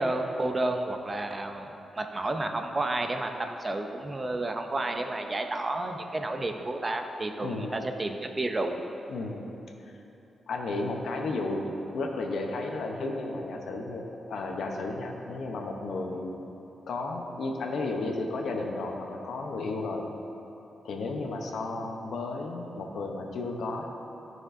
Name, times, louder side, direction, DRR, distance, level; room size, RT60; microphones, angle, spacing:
voice 1, 0.0-1.7 2.0-8.8, right 2 dB, 20° right, 5 dB, 0.5 m, -31 dB
voice 2, 7.4-7.8 9.1-9.5 9.8-10.0 10.5-16.4 16.9-20.1 20.8-23.9, left 2 dB, 75° left, 2 dB, 0.8 m, -33 dB
12.5 x 6.1 x 2.6 m, 3.0 s
wide cardioid pair, 150°, 0 cm